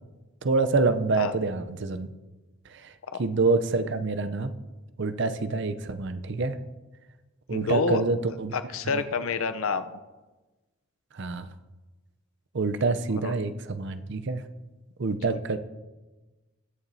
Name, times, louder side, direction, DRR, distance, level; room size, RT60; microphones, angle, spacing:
voice 1, 0.4-2.1 2.7-2.9 3.2-4.5 5.0-6.6 7.5-8.5 8.9-9.0 11.1-11.5 12.5-14.4 15.0-15.6, right 3 dB, 55° right, 11 dB, 0.6 m, -26 dB
voice 2, 7.5-8.0 8.5-10.0 13.1-13.3 15.3-15.6, left 4 dB, 75° left, 11 dB, 0.6 m, -28 dB
21.0 x 7.1 x 2.7 m, 1.2 s
head